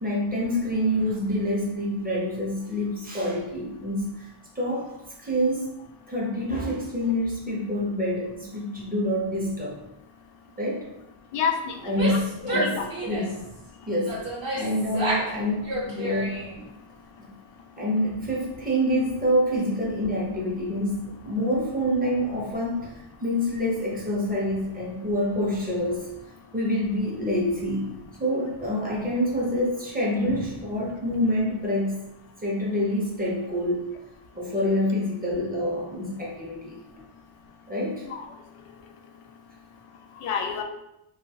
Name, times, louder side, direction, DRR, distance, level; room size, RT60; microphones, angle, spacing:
voice 1, 0.0-4.3 4.5-4.9 5.2-5.7 6.1-9.8 10.6-10.9 11.8-12.2 12.5-12.8 13.0-13.4 13.9-14.2 14.5-16.4 17.7-26.1 26.5-27.9 28.2-32.0 32.4-33.9 34.3-36.8 37.7-38.1, equal, 15° right, -4 dB, 0.8 m, -26 dB
voice 2, 11.3-12.8 38.1-38.2 40.2-40.6, left 6 dB, 85° left, 3 dB, 0.6 m, -29 dB
Female speech woman speaking / Yell, 11.8-13.4 14.0-15.3 15.6-16.6, right 1 dB, 40° right, 1.0 m, -30 dB
2.6 x 2.4 x 2.8 m, 0.88 s
cardioid pair, 105°, 50 cm